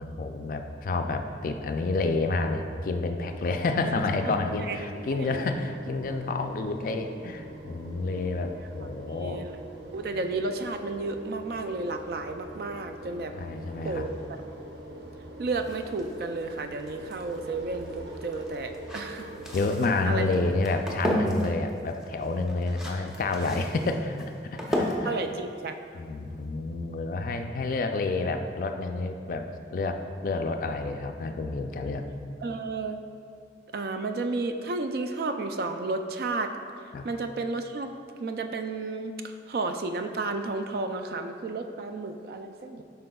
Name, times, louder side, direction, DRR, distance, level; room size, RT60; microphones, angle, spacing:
voice 1, 0.0-9.4 13.3-14.1 19.5-24.2 24.4-25.1 25.9-32.0 36.9-37.1, left 3 dB, 50° left, 6 dB, 0.3 m, -29 dB
sound 1, 3.2-20.5, right 1 dB, 85° right, 0.7 m, -44 dB
voice 2, 4.2-4.8 5.1-5.4 9.1-9.6 9.9-13.3 13.8-14.2 15.4-19.3 20.1-20.2 23.4-23.6 25.0-25.8 32.4-33.0 33.7-36.5 37.0-37.9 38.2-42.8, right 3 dB, 55° right, 7 dB, 0.3 m, -32 dB
sound 2, 15.6-26.5, equal, 5° right, 0.5 m, -35 dB
7.6 x 5.5 x 2.3 m, 2.3 s
head